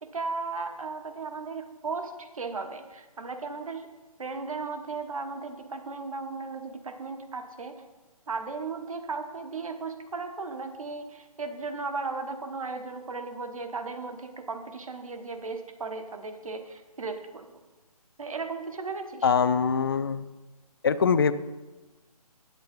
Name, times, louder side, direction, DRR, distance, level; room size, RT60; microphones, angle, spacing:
voice 1, 0.0-3.9 4.2-7.8 8.3-17.5 18.2-19.3, right 4 dB, 60° right, 7 dB, 1.2 m, -36 dB
voice 2, 19.2-20.3 20.8-21.3, left 6 dB, 40° left, 14 dB, 0.4 m, -23 dB
8.8 x 8.1 x 5.3 m, 1.2 s
figure-of-eight pair, 140°, 20 cm